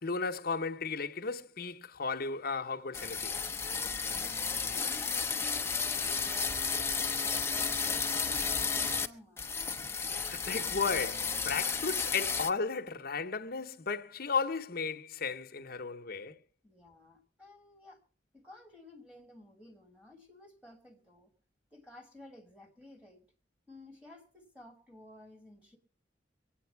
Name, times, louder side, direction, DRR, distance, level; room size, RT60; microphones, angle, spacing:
voice 1, 0.0-3.3 9.8-16.4, left 5 dB, 55° left, 0.9 m, -35 dB
sound 1, 2.9-9.1 9.4-12.5, left 5 dB, 15° left, 0.8 m, -33 dB
voice 2, 4.1-9.6 16.6-18.0 18.3-21.3 21.7-23.3 23.7-25.8, left 2 dB, 5° right, 2.6 m, -54 dB
23.5 x 9.0 x 4.6 m
head